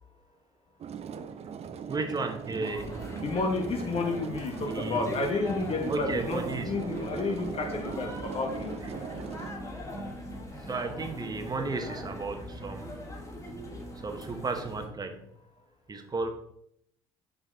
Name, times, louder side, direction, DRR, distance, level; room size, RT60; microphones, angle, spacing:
sound 1, 0.8-9.5, right 7 dB, 45° right, 0.6 m, -40 dB
voice 1, 1.9-2.9 4.6-5.1 5.9-6.8 8.8-8.9 10.6-12.9 14.0-15.2 15.9-16.3, right 3 dB, 25° right, 5 dB, 1.1 m, -34 dB
sound 2, 2.6-14.9, equal, 20° left, 1.8 m, -40 dB
voice 2, 3.2-8.8, left 3 dB, 40° left, 3 dB, 1.0 m, -31 dB
5.9 x 3.9 x 4.1 m, 0.72 s
hypercardioid pair, 60°, 15 cm